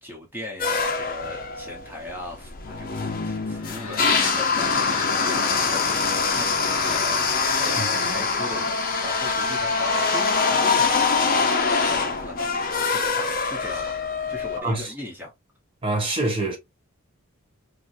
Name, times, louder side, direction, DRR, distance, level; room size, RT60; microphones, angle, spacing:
voice 1, 0.0-14.0 14.3-15.3, left 2 dB, 10° right, 1.0 m, -38 dB
sound 1, 0.6-14.6, left 4 dB, 40° left, 0.8 m, -24 dB
sound 2, 3.5-12.0, left 4 dB, 75° left, 1.1 m, -38 dB
voice 2, 7.8-8.2 14.6-14.9 15.8-16.6, right 2 dB, 25° right, 1.2 m, -26 dB
4.6 x 2.3 x 2.6 m
head